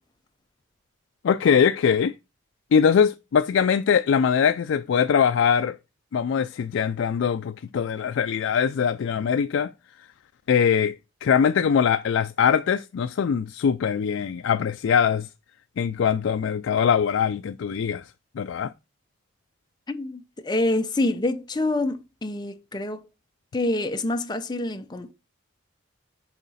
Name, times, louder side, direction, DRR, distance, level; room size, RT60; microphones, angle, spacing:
voice 1, 1.2-2.1 2.7-5.8 6.1-9.7 10.5-10.9 11.2-15.3 15.8-18.0 18.4-18.7, left 7 dB, 70° left, 0.3 m, -22 dB
voice 2, 19.9-23.1 23.5-25.1, left 2 dB, 20° left, 0.6 m, -26 dB
7.0 x 4.7 x 4.1 m
head